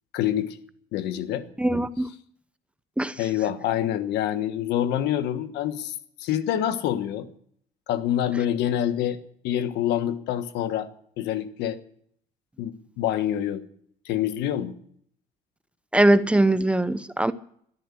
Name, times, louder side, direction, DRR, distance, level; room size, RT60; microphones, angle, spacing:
voice 1, 0.1-0.6 0.9-1.4 3.2-5.9 6.2-7.3 7.9-9.2 9.4-10.9 11.2-11.8 12.6-13.6 14.0-14.7, left 11 dB, 85° left, 1.4 m, -26 dB
voice 2, 1.6-2.1 3.0-3.1 15.9-17.3, right 1 dB, 5° right, 0.8 m, -21 dB
13.5 x 12.0 x 8.4 m
cardioid pair, 110°, 17 cm